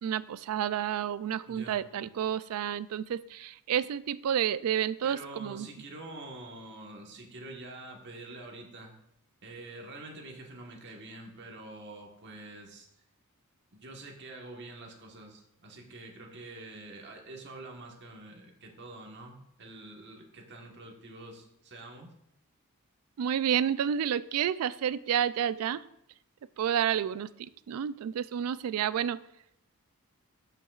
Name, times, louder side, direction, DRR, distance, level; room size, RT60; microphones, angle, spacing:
voice 1, 0.0-5.7 23.2-25.8 26.6-27.3 27.7-29.2, right 9 dB, 70° right, 18 dB, 0.3 m, -30 dB
voice 2, 1.5-1.8 5.0-8.9 9.4-12.9 13.7-22.1, right 2 dB, 50° right, 1 dB, 1.4 m, -46 dB
13.0 x 5.8 x 2.4 m, 0.78 s
head